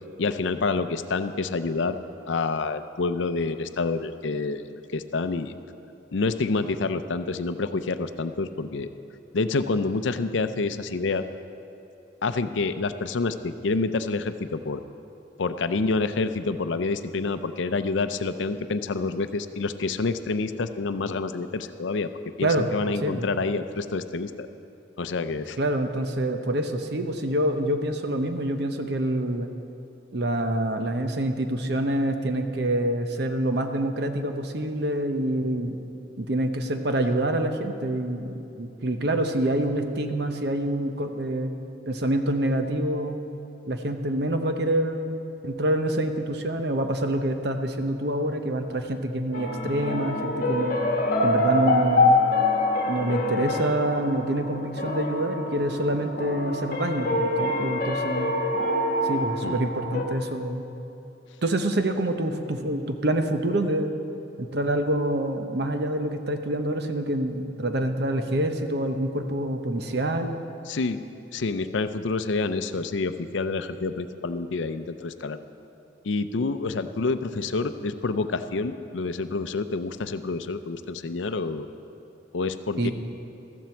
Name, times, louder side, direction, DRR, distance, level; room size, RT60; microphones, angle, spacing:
voice 1, 0.2-2.0 2.3-5.5 6.1-8.9 9.3-11.2 12.2-14.8 15.4-22.1 22.4-24.5 25.0-25.6 59.4-59.6 70.7-71.0 71.3-75.4 76.0-81.7 82.3-82.9, left 3 dB, 75° left, 11 dB, 0.5 m, -28 dB
voice 2, 25.6-29.5 30.1-35.8 36.2-41.5 41.9-43.2 43.7-50.8 51.2-52.2 52.9-58.3 59.0-60.6 61.4-63.9 64.4-70.3 82.8-82.9, right 1 dB, 60° right, 6 dB, 0.8 m, -26 dB
sound 1, 49.3-60.0, left 2 dB, 45° left, 1.4 m, -25 dB
14.0 x 7.6 x 7.1 m, 2.8 s
head